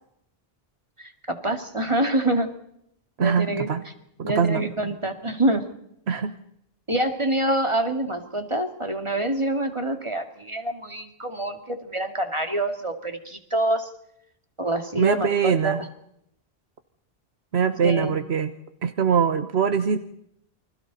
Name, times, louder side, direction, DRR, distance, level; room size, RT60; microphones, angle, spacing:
voice 1, 1.0-2.5 3.2-3.7 4.2-5.6 6.9-13.9 14.6-15.9 17.8-18.2, right 1 dB, 30° right, 6 dB, 2.3 m, -26 dB
voice 2, 3.2-3.8 4.2-4.7 6.1-6.3 15.0-15.8 17.5-18.5 18.8-20.0, right 6 dB, 85° right, 9 dB, 1.3 m, -22 dB
29.0 x 25.5 x 4.1 m, 0.74 s
omnidirectional pair, 1.1 m